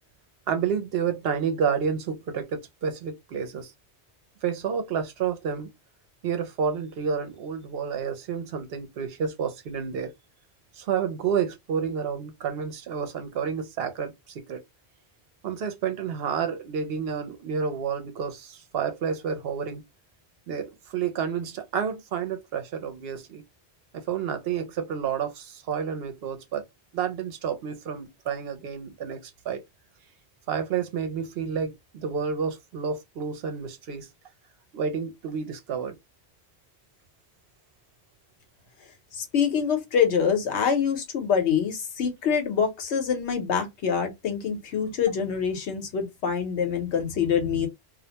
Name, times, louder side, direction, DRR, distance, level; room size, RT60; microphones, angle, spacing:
voice 1, 0.5-3.7 4.4-5.7 6.2-10.1 10.8-14.6 15.4-19.8 20.5-23.4 23.9-26.6 26.9-29.6 30.5-34.1 34.7-36.0, right 7 dB, 65° right, 0.7 m, -30 dB
voice 2, 39.1-47.7, left 7 dB, 80° left, 1.1 m, -25 dB
2.4 x 2.1 x 2.7 m
omnidirectional pair, 1.1 m